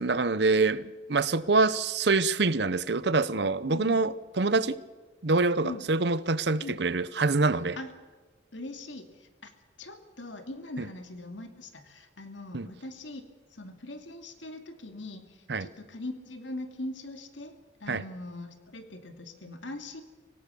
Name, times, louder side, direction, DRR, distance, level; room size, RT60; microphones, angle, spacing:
voice 1, 0.0-0.8 1.1-4.8 5.2-7.8 10.8-10.9 12.5-12.7 15.5-15.7 17.9-18.0, right 3 dB, 65° right, 0.8 m, -25 dB
voice 2, 3.6-4.0 5.6-5.8 6.6-6.8 7.7-7.9 8.5-9.5 9.8-13.2 13.5-20.0, left 2 dB, 90° left, 2.4 m, -41 dB
25.0 x 17.5 x 7.0 m
head